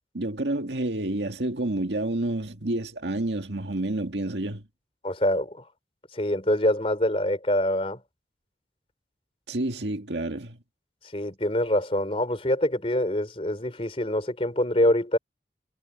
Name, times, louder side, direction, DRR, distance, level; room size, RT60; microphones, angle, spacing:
voice 1, 0.1-4.6 9.5-10.6, right 1 dB, 80° right, 2.0 m, -29 dB
voice 2, 5.0-5.6 6.1-8.0 11.1-15.2, left 1 dB, 35° left, 3.9 m, -25 dB
head